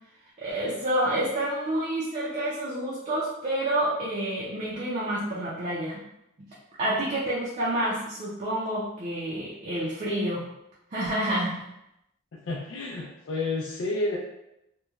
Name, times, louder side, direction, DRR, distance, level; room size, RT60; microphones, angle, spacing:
voice 1, 0.4-6.0 6.8-10.4 10.9-11.6, right 1 dB, 40° right, -7 dB, 0.5 m, -28 dB
voice 2, 12.4-14.2, left 2 dB, 65° left, -3 dB, 0.4 m, -30 dB
2.9 x 2.1 x 2.3 m, 0.85 s
head